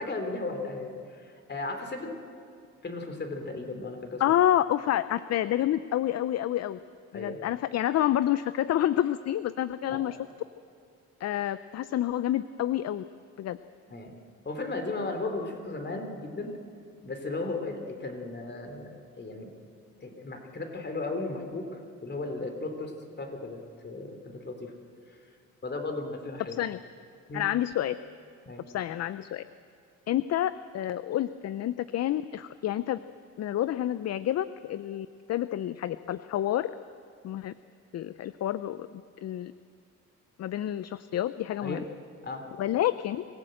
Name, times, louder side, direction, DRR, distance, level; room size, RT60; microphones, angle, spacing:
voice 1, 0.0-2.2 2.8-4.2 7.1-7.4 9.9-10.0 13.9-14.2 14.4-16.6 17.0-19.5 20.0-22.9 23.2-24.7 25.6-26.6 27.3-27.4 28.4-28.6 41.6-41.8 42.2-42.4, left 2 dB, 35° left, 5 dB, 3.3 m, -35 dB
voice 2, 4.2-6.8 7.1-10.2 11.2-13.0 13.4-13.6 26.6-26.8 27.3-28.0 28.7-29.4 30.1-33.0 33.4-36.7 37.2-37.5 37.9-39.5 40.4-41.8 42.6-43.2, left 12 dB, 60° left, 14 dB, 0.6 m, -28 dB
25.5 x 16.5 x 7.7 m, 2.4 s
cardioid pair, 90°, 30 cm